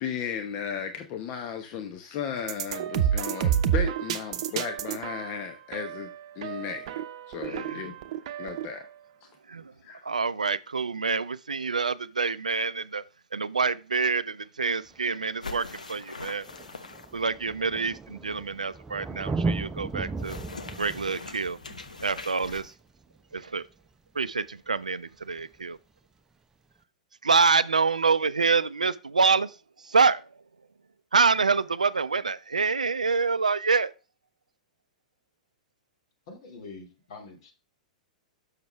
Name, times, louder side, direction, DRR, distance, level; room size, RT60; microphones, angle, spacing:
voice 1, 0.0-6.1 6.3-6.9 7.3-7.9 8.4-8.9 9.8-10.0, left 7 dB, 40° left, 1.0 m, -35 dB
sound 1, 2.4-8.8, right 9 dB, 50° right, 0.8 m, -30 dB
voice 2, 7.5-7.8 9.5-9.6 10.0-13.0 13.3-16.4 17.1-20.4 20.8-21.6 22.0-22.7 23.3-23.7 24.2-25.8 27.2-29.5 29.8-30.2 31.1-33.9, right 4 dB, 80° right, 0.4 m, -26 dB
Thunder, 14.9-15.0 16.0-16.1 16.3-23.6 25.3-25.4, right 3 dB, 15° right, 0.6 m, -36 dB
sound 2, 15.4-17.3 20.2-22.7, left 4 dB, 80° left, 0.9 m, -42 dB
voice 3, 36.3-37.5, left 3 dB, 55° left, 2.5 m, -45 dB
6.9 x 6.6 x 3.4 m
figure-of-eight pair, 100°, 4 cm